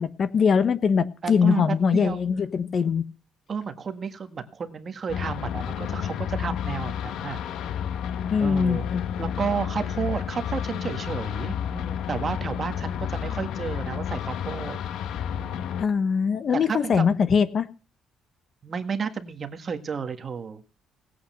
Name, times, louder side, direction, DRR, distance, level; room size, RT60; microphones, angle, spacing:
voice 1, 0.0-3.0 8.3-9.0 15.8-17.7, left 6 dB, 40° left, 13 dB, 1.1 m, -22 dB
voice 2, 1.2-2.2 3.5-7.4 8.4-8.9 9.2-14.8 15.3-15.7 16.5-17.1 18.6-20.6, right 6 dB, 30° right, 7 dB, 1.6 m, -32 dB
sound 1, 5.1-15.9, left 9 dB, 75° left, 1.1 m, -31 dB
18.5 x 8.5 x 5.6 m, 0.37 s
cardioid pair, 150°, 0 cm